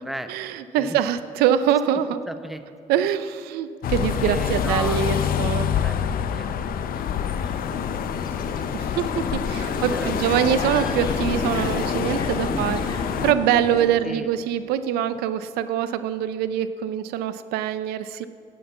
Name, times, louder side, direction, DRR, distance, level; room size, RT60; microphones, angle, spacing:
voice 1, 0.3-2.2 2.9-5.7 8.7-12.8 13.2-18.3, right 10 dB, 90° right, 13 dB, 0.5 m, -24 dB
voice 2, 2.1-2.6 4.2-7.2 9.5-11.0 12.4-12.7 14.0-14.3, equal, ahead, 9 dB, 0.9 m, -37 dB
sound 1, 3.8-13.3, left 8 dB, 65° left, 0.6 m, -26 dB
sound 2, 6.9-13.9, left 2 dB, 25° left, 1.9 m, -33 dB
9.4 x 9.2 x 7.1 m, 2.4 s
supercardioid pair, 75°, 16 cm